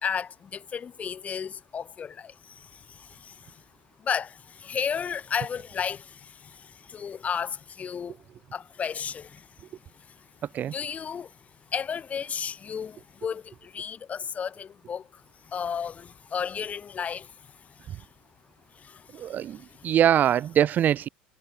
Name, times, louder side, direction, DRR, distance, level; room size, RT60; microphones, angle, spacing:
voice 1, 0.0-3.6 4.0-8.2 8.5-9.7 9.9-10.3 10.6-11.4 11.7-18.1 18.7-20.0, left 7 dB, 30° left, 2.4 m, -34 dB
voice 2, 19.2-19.6 19.8-21.1, right 10 dB, 35° right, 0.6 m, -22 dB
figure-of-eight pair, 70°, 5 cm